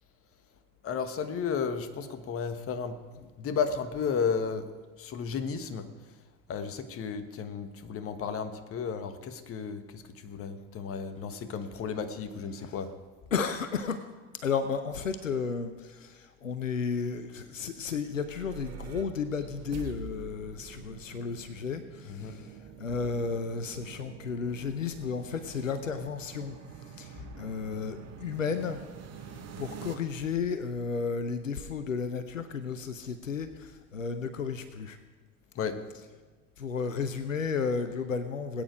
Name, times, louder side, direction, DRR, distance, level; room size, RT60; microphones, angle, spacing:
voice 1, 0.8-4.6 5.0-5.9 6.5-12.9 22.1-22.4 35.5-35.8, left 6 dB, 35° left, 10 dB, 1.4 m, -33 dB
voice 2, 13.3-14.0 14.4-26.6 27.0-28.8 29.6-35.0 36.6-38.6, left 5 dB, 85° left, 11 dB, 0.8 m, -33 dB
sound 1, 17.9-29.9, right 8 dB, 40° right, 1.6 m, -46 dB
20.5 x 9.0 x 5.0 m, 1.3 s
figure-of-eight pair, 70°, 38 cm